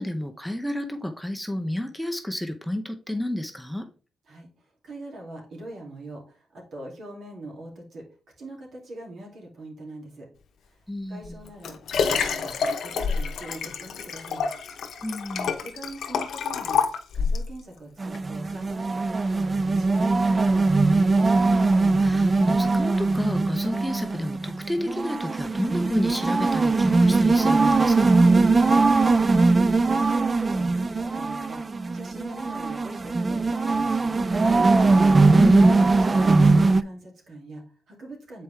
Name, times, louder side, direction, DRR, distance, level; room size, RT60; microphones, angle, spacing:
voice 1, 0.0-3.9 10.9-11.4 15.0-15.5 21.4-28.3 35.3-35.9, left 1 dB, ahead, 5 dB, 0.7 m, -30 dB
voice 2, 4.8-8.0 8.4-10.3 11.1-14.5 15.6-16.8 17.1-21.1 28.6-34.9 36.0-38.4, right 2 dB, 65° right, -1 dB, 2.5 m, -42 dB
Liquid, 11.2-17.5 18.1-18.2, left 6 dB, 70° left, 0.8 m, -28 dB
sound 1, 18.0-36.8, right 3 dB, 30° right, 0.3 m, -21 dB
7.1 x 4.5 x 3.3 m, 0.38 s
cardioid pair, 90°, 0 cm